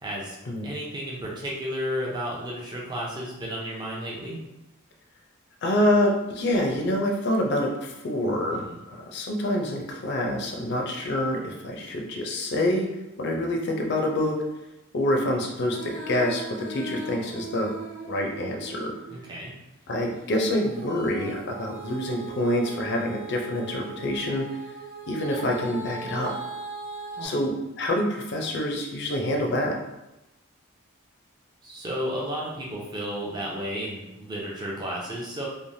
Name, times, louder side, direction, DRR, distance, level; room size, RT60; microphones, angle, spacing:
voice 1, 0.0-0.4 0.6-4.4 8.5-8.8 19.1-19.5 27.2-27.3 31.6-35.5, equal, 20° right, -3 dB, 0.5 m, -33 dB
voice 2, 5.6-12.9 13.2-14.4 14.9-17.7 18.1-18.9 19.9-24.4 25.1-26.3 27.2-29.8, left 1 dB, 55° left, 1 dB, 0.5 m, -26 dB
Female singing, 15.6-19.3 20.5-27.3, right 3 dB, 45° right, 0.9 m, -39 dB
3.1 x 2.1 x 2.6 m, 0.96 s
head